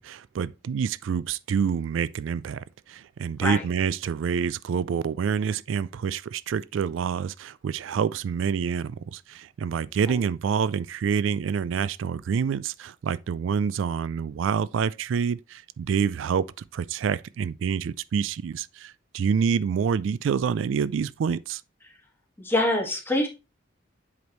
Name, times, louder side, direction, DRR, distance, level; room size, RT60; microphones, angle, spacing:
voice 1, 0.0-16.5 16.7-21.6, right 7 dB, 90° right, 0.3 m, -27 dB
voice 2, 22.4-23.3, left 1 dB, 10° left, 1.7 m, -24 dB
7.9 x 5.1 x 3.1 m
head